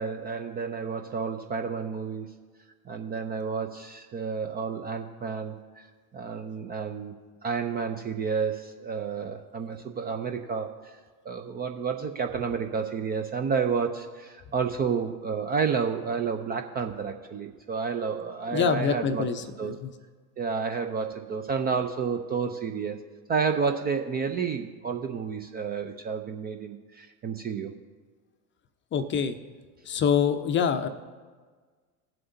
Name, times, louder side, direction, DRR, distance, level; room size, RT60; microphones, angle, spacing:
voice 1, 0.0-2.3 2.9-5.9 6.1-7.1 7.4-11.0 11.2-19.3 19.6-19.7 20.4-23.0 23.3-27.7, right 5 dB, 20° right, 6 dB, 0.4 m, -30 dB
voice 2, 18.5-19.9 28.9-29.4 29.9-30.9, left 7 dB, 25° left, 10 dB, 0.6 m, -25 dB
18.0 x 7.7 x 2.7 m, 1.5 s
hypercardioid pair, 85°, 49 cm